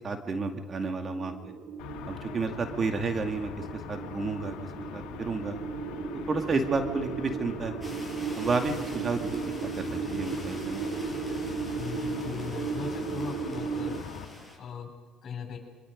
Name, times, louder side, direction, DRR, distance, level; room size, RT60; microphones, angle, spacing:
voice 1, 0.0-1.5 2.1-3.5 3.9-4.5 4.9-5.6 6.3-7.8 8.4-10.9, right 4 dB, 40° right, 5 dB, 2.3 m, -31 dB
sound 1, 1.2-14.0, right 5 dB, 60° right, 2.8 m, -36 dB
sound 2, 1.8-14.3, left 8 dB, 75° left, 2.3 m, -42 dB
sound 3, 7.8-14.6, left 1 dB, 5° right, 7.8 m, -46 dB
voice 2, 11.7-14.0 14.6-14.9 15.2-15.6, left 7 dB, 50° left, 3 dB, 7.4 m, -39 dB
27.5 x 24.5 x 5.3 m, 1.5 s
supercardioid pair, 80°, 0 cm